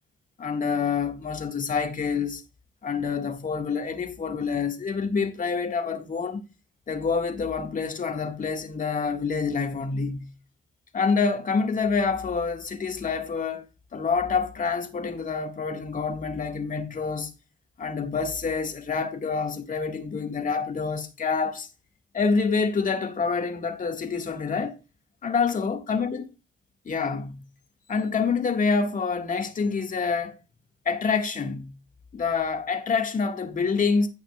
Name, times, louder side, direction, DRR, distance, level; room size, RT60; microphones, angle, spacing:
voice 1, 0.4-2.4 2.8-6.4 6.9-10.3 10.9-17.3 17.8-21.7 22.1-24.8 25.2-26.3 26.8-27.5 27.9-30.4 30.8-31.8 32.1-34.1, left 5 dB, 40° left, 1.7 m, -27 dB
16.0 x 5.6 x 2.3 m
cardioid pair, 90°, 20 cm